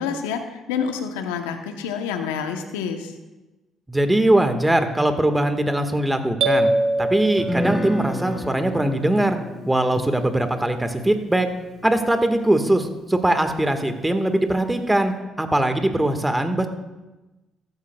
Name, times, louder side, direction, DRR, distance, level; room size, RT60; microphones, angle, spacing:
voice 1, 0.0-3.1, left 7 dB, 85° left, 6 dB, 0.9 m, -28 dB
voice 2, 3.9-6.7 7.0-9.4 9.7-11.5 11.8-16.7, right 1 dB, 10° right, 7 dB, 1.6 m, -21 dB
sound 1, 6.4-8.3, right 2 dB, 65° right, 1.2 m, -23 dB
Guitar, 7.4-13.5, left 1 dB, 10° left, 3.3 m, -33 dB
15.5 x 13.0 x 2.3 m, 1.1 s
hypercardioid pair, 50°, 0 cm